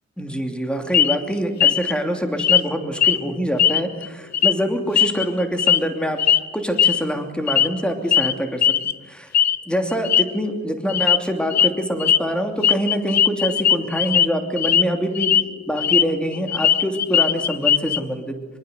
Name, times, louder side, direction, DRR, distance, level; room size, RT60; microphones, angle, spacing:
voice 1, 0.2-6.2 6.5-8.7 9.1-9.3 9.7-15.3 15.7-18.3, equal, 5° left, 5 dB, 2.9 m, -25 dB
sound 1, 0.9-1.2 1.6-1.9 2.4-2.7 3.0-3.2 3.6-4.1 4.3-4.5 5.0-5.8 6.2-6.4 6.8-7.0 7.5-7.8 8.1-8.3 8.6-8.9 9.3-9.6 9.9-10.2 10.9-11.2 11.5-11.7 12.0-12.2 12.6-14.3 14.6-14.8 15.1-16.0 16.3-18.0, left 9 dB, 65° left, 0.8 m, -18 dB
24.5 x 23.5 x 8.2 m, 1.2 s
wide cardioid pair, 175°, 29 cm